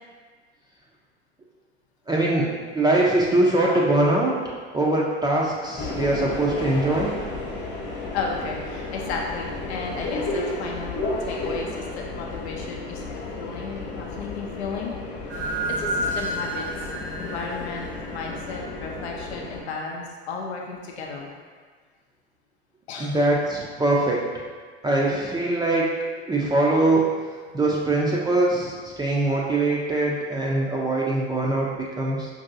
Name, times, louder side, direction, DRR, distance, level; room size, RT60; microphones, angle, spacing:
voice 1, 2.1-2.5 2.7-4.3 4.7-7.1 23.0-24.2 24.8-26.0 26.3-27.1 27.5-32.3, right 2 dB, 15° right, -4 dB, 0.4 m, -22 dB
Subway metro underground, 5.8-19.6, left 2 dB, 35° left, 1.0 m, -33 dB
voice 2, 8.1-15.0 15.7-16.6 17.2-21.3 22.9-23.3, left 4 dB, 75° left, 0 dB, 0.6 m, -34 dB
sound 1, 15.3-19.3, right 1 dB, 80° right, 0.9 m, -31 dB
5.2 x 2.6 x 2.5 m, 1.5 s
figure-of-eight pair, 75°, 33 cm